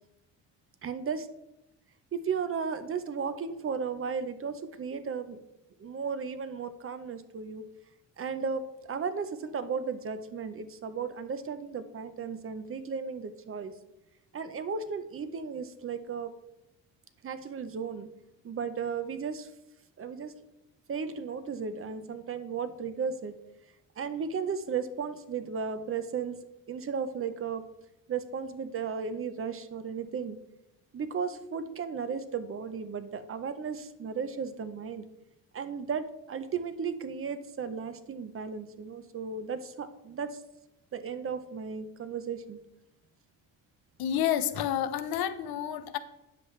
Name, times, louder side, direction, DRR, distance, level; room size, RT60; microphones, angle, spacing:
voice 1, 0.8-1.3 2.1-5.4 5.8-7.6 8.2-13.7 14.3-16.3 17.2-18.1 18.4-19.5 20.0-20.3 20.9-23.3 24.0-26.4 26.7-27.6 28.1-30.4 30.9-35.1 35.5-40.4 40.9-42.6, right 6 dB, 35° right, 11 dB, 0.7 m, -35 dB
voice 2, 44.0-46.0, left 10 dB, 75° left, 12 dB, 0.8 m, -29 dB
9.6 x 7.4 x 3.2 m, 0.90 s
cardioid pair, 125°, 37 cm